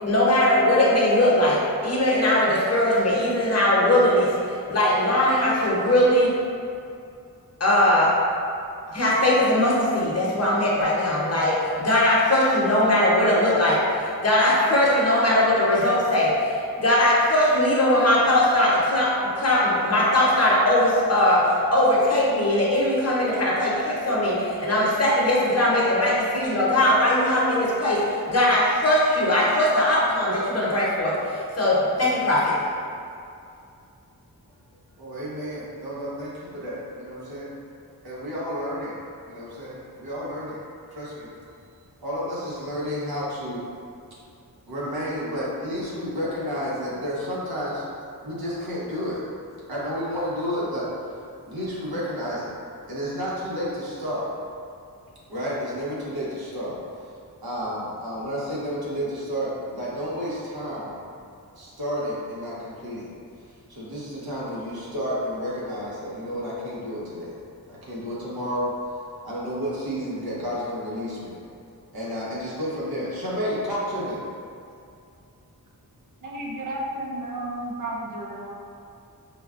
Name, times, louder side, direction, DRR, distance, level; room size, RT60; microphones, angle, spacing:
voice 1, 0.0-4.3 4.7-6.3 7.6-8.1 8.9-19.1 19.4-21.4 21.7-31.2 31.6-32.5, left 1 dB, 45° left, -6 dB, 0.8 m, -20 dB
voice 2, 35.0-37.5 38.0-39.0 39.3-40.6 40.9-41.3 42.0-43.6 44.7-47.8 48.2-49.2 49.7-50.9 51.4-52.5 52.9-54.3 55.3-56.8 57.4-61.0 61.5-63.1 63.7-67.4 67.7-68.9 69.2-71.4 71.9-74.2, equal, 80° right, -7 dB, 1.0 m, -31 dB
voice 3, 76.2-78.5, right 1 dB, 55° right, -2 dB, 0.5 m, -32 dB
5.1 x 2.2 x 2.4 m, 2.5 s
wide cardioid pair, 105°, 37 cm